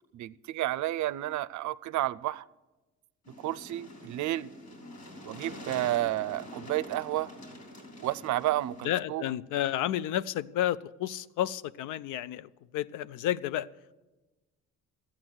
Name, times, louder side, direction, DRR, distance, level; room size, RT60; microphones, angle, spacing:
voice 1, 0.1-2.5 3.4-4.5 5.2-7.3 8.0-9.4, right 15 dB, 70° right, 0.5 m, -31 dB
sound 1, 3.3-8.9, left 1 dB, 60° left, 3.8 m, -46 dB
voice 2, 8.8-13.7, left 12 dB, 90° left, 0.5 m, -31 dB
13.0 x 8.6 x 7.7 m
cardioid pair, 90°, 30 cm